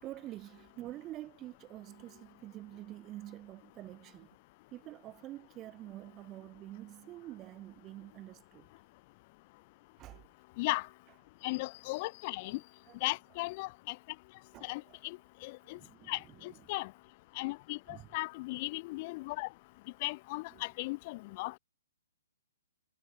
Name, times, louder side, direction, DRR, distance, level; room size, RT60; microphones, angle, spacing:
voice 1, 0.0-4.4 4.7-8.7 10.0-10.2 12.0-12.1 12.5-13.2 14.5-15.0 15.7-16.7 17.9-18.1 20.5-20.6, right 15 dB, 25° right, 3.9 m, -48 dB
voice 2, 11.4-12.6 13.0-14.0 14.6-15.2 15.4-15.8 16.1-16.9 17.4-19.5 20.0-21.6, left 23 dB, 40° left, 2.0 m, -37 dB
hypercardioid pair, 130°, 0 cm